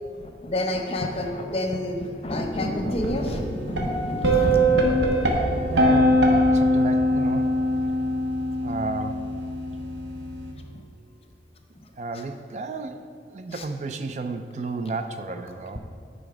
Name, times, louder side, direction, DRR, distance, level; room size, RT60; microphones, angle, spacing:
voice 1, 0.2-4.9 13.5-13.6, left 1 dB, 35° left, 4 dB, 0.7 m, -28 dB
sound 1, 3.0-10.5, equal, 85° right, 1.2 m, -22 dB
voice 2, 5.7-7.5 8.6-9.3 12.0-15.8, right 3 dB, 40° right, 7 dB, 0.3 m, -32 dB
10.0 x 4.0 x 4.9 m, 2.3 s
head